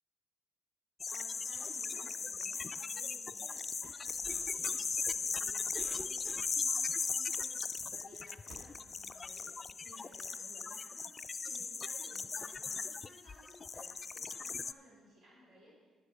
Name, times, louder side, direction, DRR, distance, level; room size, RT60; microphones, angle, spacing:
sound 1, 1.0-14.7, left 5 dB, 35° left, 0.3 m, -38 dB
voice 1, 1.1-7.6 7.9-9.5 9.8-15.7, equal, 85° right, -6 dB, 3.8 m, -59 dB
Cough, 4.0-6.9, equal, 15° right, 0.5 m, -53 dB
sound 2, 5.7-12.0 12.5-12.6, right 1 dB, 65° right, 1.2 m, -64 dB
10.0 x 10.0 x 5.0 m, 1.3 s
cardioid pair, 90°, 0 cm